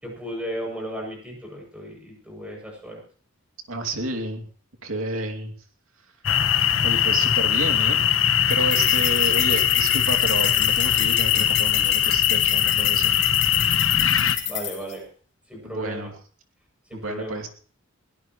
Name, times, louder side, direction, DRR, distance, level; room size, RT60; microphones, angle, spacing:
voice 1, 0.0-3.0 6.9-7.2 8.8-8.9 14.5-15.0 15.5-16.1 16.9-17.4, equal, 5° right, -1 dB, 7.8 m, -35 dB
voice 2, 3.7-4.4 4.8-5.5 6.8-8.1 8.5-13.1 15.6-16.1 16.9-17.5, right 2 dB, 80° right, 3 dB, 2.8 m, -30 dB
sound 1, 6.2-14.4, left 10 dB, 70° left, 1.2 m, -21 dB
sound 2, 8.5-14.9, left 10 dB, 55° left, 3.1 m, -29 dB
22.0 x 17.0 x 3.2 m, 0.43 s
head